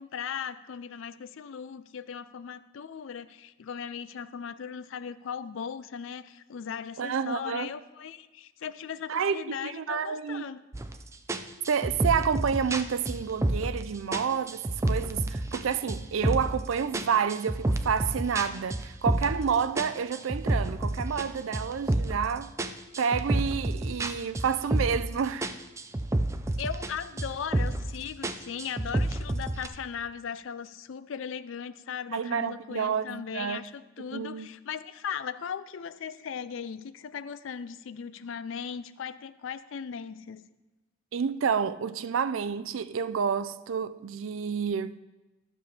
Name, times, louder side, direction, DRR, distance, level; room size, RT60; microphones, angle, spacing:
voice 1, 0.0-10.6 26.6-40.4, left 7 dB, 70° left, 0.4 m, -38 dB
voice 2, 7.0-7.7 9.1-10.4 11.7-22.5 23.0-25.5 32.1-33.6 34.0-34.5 41.1-45.0, right 6 dB, 75° right, 0.4 m, -29 dB
sound 1, 10.7-11.0 11.3-13.8 14.1-15.6 15.9-16.6 16.9-19.4 19.8-22.3 22.6-25.1 25.4-26.9 27.2-27.9 28.2-29.7, right 1 dB, 15° right, 0.4 m, -29 dB
12.5 x 6.6 x 3.4 m
head